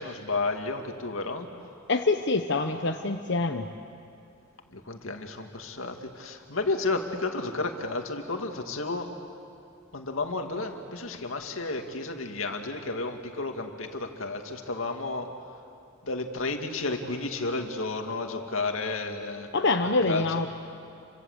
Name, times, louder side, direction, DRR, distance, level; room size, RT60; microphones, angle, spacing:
voice 1, 0.0-1.5 4.7-9.2 9.9-15.3 16.0-19.5 20.1-20.2, left 3 dB, 90° left, 4 dB, 2.3 m, -32 dB
voice 2, 1.9-3.7 19.5-20.5, left 3 dB, 60° left, 4 dB, 1.0 m, -25 dB
30.0 x 24.5 x 8.1 m, 2.5 s
head